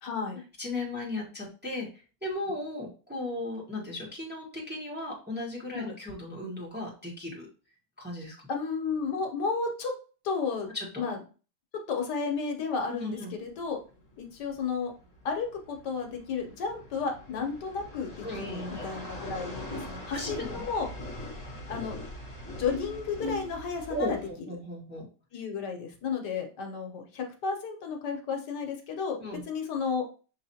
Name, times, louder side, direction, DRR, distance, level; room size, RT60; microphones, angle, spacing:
voice 1, 0.0-0.4 5.7-5.9 8.5-9.9 10.2-10.7 11.0-11.2 11.7-13.8 14.2-14.9 15.2-20.9 21.7-22.0 22.6-24.2 25.3-30.0, left 5 dB, 75° left, 3 dB, 1.5 m, -32 dB
voice 2, 0.6-7.5 8.0-8.3 10.7-11.0 12.8-13.3 18.2-18.9 20.1-20.6 23.9-25.1 29.2-29.4, left 1 dB, 5° right, -3 dB, 1.2 m, -36 dB
sound 1, 13.5-24.3, left 1 dB, 25° left, 1.4 m, -41 dB
6.2 x 3.1 x 2.7 m, 0.36 s
omnidirectional pair, 1.9 m